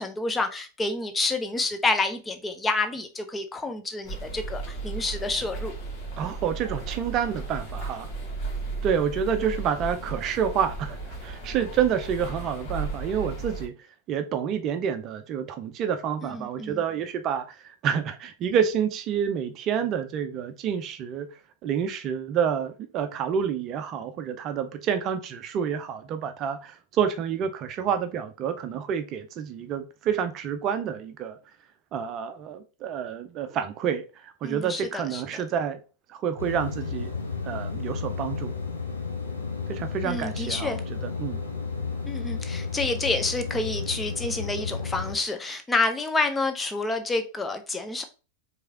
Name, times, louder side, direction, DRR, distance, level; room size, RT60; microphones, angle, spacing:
voice 1, 0.0-5.8 16.2-16.8 34.4-35.2 40.0-40.8 42.0-48.0, left 3 dB, 15° left, 0.8 m, -28 dB
sound 1, 4.0-13.7, right 3 dB, 45° left, 1.9 m, -35 dB
voice 2, 6.2-8.1 8.8-13.7 14.1-21.3 21.6-31.4 31.9-35.8 36.1-37.1 37.4-38.5 39.7-41.5, right 8 dB, 35° right, 0.5 m, -28 dB
sound 2, 36.4-45.1, left 5 dB, 80° left, 1.0 m, -32 dB
4.8 x 3.4 x 2.8 m
figure-of-eight pair, 90°, 0 cm